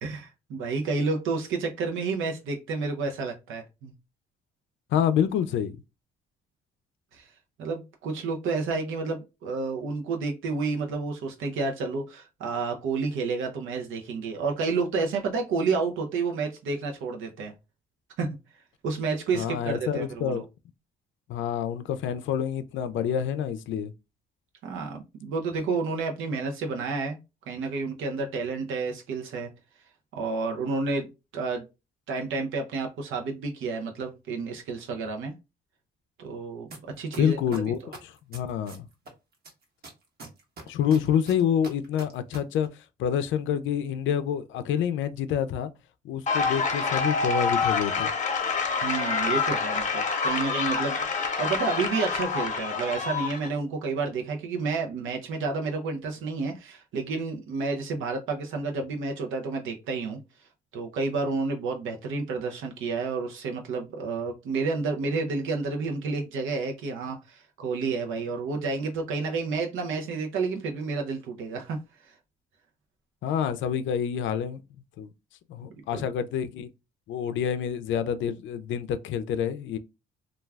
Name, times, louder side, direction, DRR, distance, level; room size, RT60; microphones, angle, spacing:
voice 1, 0.0-3.9 7.1-7.3 7.6-17.5 18.2-18.3 18.8-20.4 24.6-27.2 27.5-29.5 30.2-31.1 31.3-31.6 32.1-35.3 36.2-36.7 37.0-37.4 48.8-60.2 60.7-71.8 75.9-76.0, right 4 dB, 80° right, 0.6 m, -30 dB
voice 2, 4.9-5.8 19.3-20.4 21.3-23.9 37.2-38.9 40.7-42.7 43.0-45.7 46.0-48.1 73.2-74.6 75.0-75.1 75.5-76.7 77.1-79.8, left 8 dB, 75° left, 0.4 m, -27 dB
sound 1, 36.7-36.8 37.1-39.1 39.4-42.4 42.6-42.7, right 2 dB, 55° right, 1.0 m, -42 dB
sound 2, 46.3-53.5, left 5 dB, 40° left, 0.8 m, -27 dB
2.3 x 2.3 x 3.3 m
cardioid pair, 90°, 20 cm